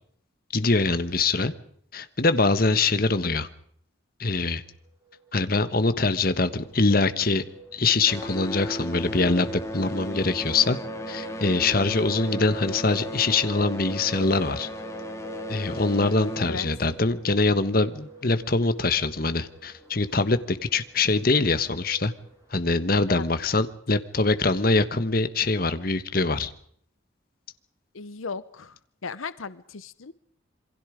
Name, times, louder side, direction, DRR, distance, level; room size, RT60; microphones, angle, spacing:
voice 1, 0.5-1.5 1.9-3.5 4.2-4.6 5.3-7.4 7.7-10.8 11.1-14.7 15.5-22.1 22.5-26.5, left 3 dB, 45° left, 12 dB, 1.3 m, -23 dB
sound 1, 4.8-22.6, right 2 dB, 20° right, 4.9 m, -45 dB
sound 2, 6.2-7.6 7.9-18.2 19.0-19.1 19.8-19.9 20.5-20.6, equal, 15° left, 2.9 m, -36 dB
voice 2, 27.9-30.1, left 4 dB, 90° left, 16 dB, 0.9 m, -36 dB
27.5 x 23.0 x 5.1 m, 0.63 s
head